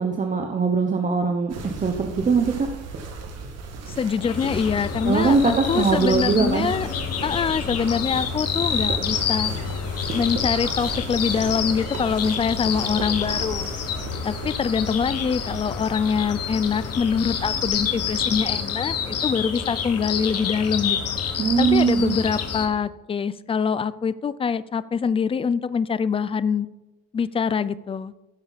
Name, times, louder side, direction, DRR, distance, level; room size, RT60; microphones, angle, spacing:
voice 1, 0.0-2.7 5.1-6.7 21.4-22.2, right 5 dB, 25° right, 4 dB, 1.0 m, -21 dB
sound 1, 1.5-18.4, right 3 dB, 55° right, 2.1 m, -36 dB
voice 2, 3.9-6.9 7.2-9.5 10.1-13.8 14.2-21.2 21.6-26.7 27.1-28.1, left 6 dB, 20° left, 16 dB, 0.4 m, -24 dB
sound 2, 4.2-22.7, left 7 dB, 50° left, 1.6 m, -28 dB
15.5 x 6.8 x 4.1 m, 1.1 s
cardioid pair, 120°, 31 cm